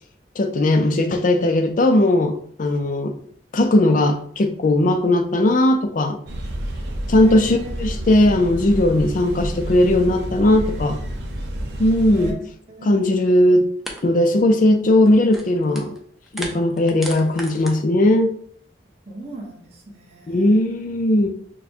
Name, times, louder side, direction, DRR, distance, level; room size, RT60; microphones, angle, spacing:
voice 1, 0.4-3.1 3.5-6.2 7.1-11.0 11.8-12.4 12.8-13.7 14.0-16.0 16.3-18.4 20.3-21.3, left 1 dB, 50° left, 7 dB, 0.5 m, -18 dB
sound 1, 6.3-12.3, right 1 dB, 75° right, 0.7 m, -29 dB
voice 2, 7.1-7.9 12.1-12.4 12.7-13.1 19.1-20.7, right 1 dB, 35° right, -2 dB, 1.1 m, -37 dB
sound 2, 13.2-13.3 13.8-14.0 14.2-14.5 14.9-16.0 16.3-17.7, right 1 dB, ahead, 0.6 m, -35 dB
6.1 x 2.2 x 2.8 m, 0.62 s
head